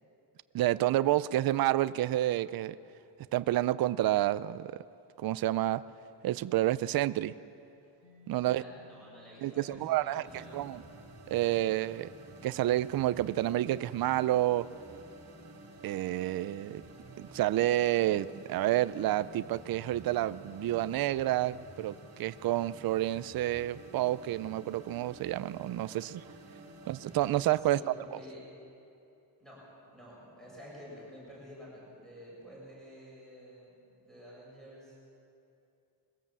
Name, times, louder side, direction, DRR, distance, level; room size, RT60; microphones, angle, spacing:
voice 1, 0.5-2.8 3.3-4.8 5.2-5.8 6.2-7.3 8.3-8.6 9.4-10.8 11.3-12.1 12.4-14.7 15.8-16.8 17.2-26.3 26.9-27.8 28.1-28.2, right 14 dB, 55° right, 15 dB, 0.5 m, -29 dB
Mallet percussion, 8.0-15.5, left 3 dB, 65° left, 4.6 m, -64 dB
voice 2, 8.4-10.6 27.7-28.4 29.4-29.6 29.9-33.7 34.0-35.0, equal, ahead, -7 dB, 6.6 m, -50 dB
sound 1, 10.2-27.3, right 2 dB, 35° right, 2.4 m, -51 dB
22.0 x 16.5 x 7.4 m, 2.6 s
wide cardioid pair, 175°, 44 cm